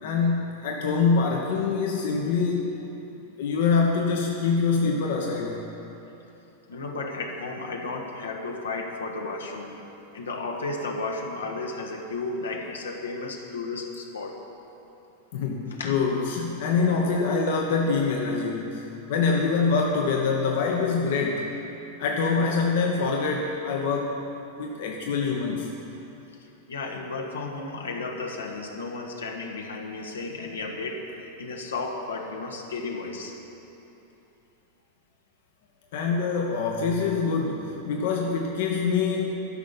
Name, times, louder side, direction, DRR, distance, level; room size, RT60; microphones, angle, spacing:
voice 1, 0.0-2.7 3.4-5.6 15.3-21.5 22.0-24.2 24.6-25.7 35.9-39.3, left 4 dB, 55° left, 0 dB, 1.2 m, -25 dB
voice 2, 6.7-9.9 10.1-14.4 15.7-16.0 26.7-33.4, left 3 dB, 70° left, 1 dB, 1.4 m, -33 dB
13.0 x 6.4 x 9.6 m, 3.0 s
figure-of-eight pair, 90°, 0 cm